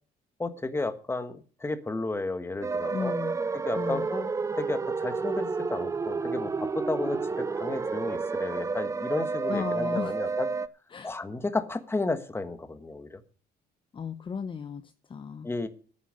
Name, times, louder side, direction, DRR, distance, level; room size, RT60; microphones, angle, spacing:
voice 1, 0.4-3.1 3.5-7.2 7.6-10.5 11.0-13.2 15.4-15.7, left 2 dB, 15° left, 1.4 m, -33 dB
sound 1, 2.6-10.7, right 4 dB, 20° right, 0.5 m, -30 dB
voice 2, 2.9-3.4 3.8-4.0 9.5-10.1 10.9-11.2 13.9-15.5, left 5 dB, 30° left, 0.8 m, -35 dB
10.0 x 9.7 x 6.4 m
cardioid pair, 110°, 17 cm